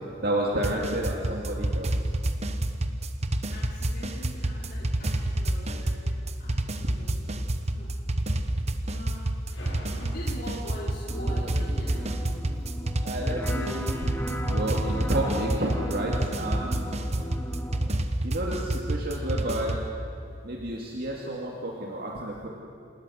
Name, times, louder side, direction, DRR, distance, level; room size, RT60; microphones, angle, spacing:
voice 1, 0.2-1.9 13.0-14.1 14.5-16.9 18.2-19.8 20.4-22.5, right 1 dB, 55° right, -2 dB, 2.3 m, -30 dB
sound 1, 0.6-19.9, right 1 dB, 35° right, 1.2 m, -28 dB
voice 2, 3.5-7.9 8.8-9.3 9.9-12.2, equal, 55° left, -6 dB, 3.8 m, -42 dB
sound 2, 9.5-13.9, equal, 75° left, 6.0 m, -47 dB
sound 3, 11.1-17.9, equal, 10° left, 1.7 m, -36 dB
27.0 x 20.0 x 6.5 m, 2.4 s
head